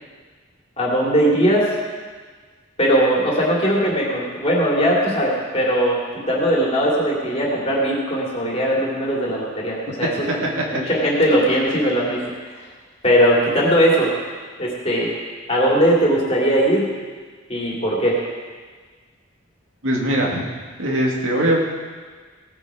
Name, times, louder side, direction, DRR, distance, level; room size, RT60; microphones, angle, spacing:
voice 1, 0.8-1.7 2.8-6.0 6.3-10.3 10.7-12.2 13.0-14.1 14.6-15.1 15.5-16.8 17.5-18.2, equal, 30° left, -4 dB, 2.6 m, -19 dB
voice 2, 19.8-20.5 20.8-21.6, right 1 dB, 85° right, -1 dB, 2.3 m, -20 dB
17.0 x 7.6 x 5.0 m, 1.5 s
head